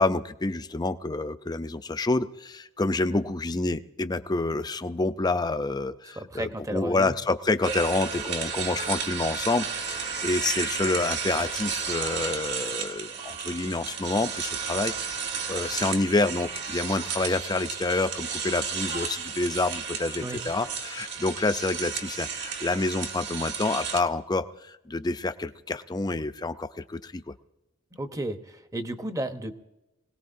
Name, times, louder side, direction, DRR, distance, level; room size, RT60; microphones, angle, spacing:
voice 1, 0.0-27.3, left 2 dB, 20° left, 11 dB, 0.5 m, -28 dB
voice 2, 6.1-7.1 20.2-20.4 27.9-29.5, right 1 dB, 15° right, 8 dB, 0.9 m, -33 dB
sound 1, 7.6-24.0, right 6 dB, 60° right, 1.8 m, -33 dB
sound 2, 11.8-17.5, right 4 dB, 80° right, 6.4 m, -50 dB
24.5 x 18.0 x 2.6 m, 0.96 s
head